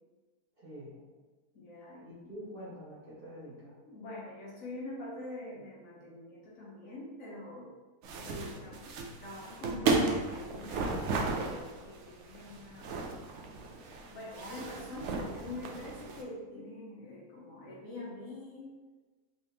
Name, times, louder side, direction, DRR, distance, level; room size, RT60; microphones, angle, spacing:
voice 1, 0.6-1.0 2.0-3.7 8.0-8.3, equal, 35° right, -9 dB, 1.5 m, -47 dB
voice 2, 1.5-2.1 3.9-7.7 8.2-8.8 9.1-13.1 13.6-18.7, left 2 dB, 60° left, -5 dB, 1.2 m, -45 dB
sound 1, 8.0-16.2, right 3 dB, 75° right, 0.6 m, -34 dB
3.6 x 3.5 x 2.8 m, 1.3 s
omnidirectional pair, 1.7 m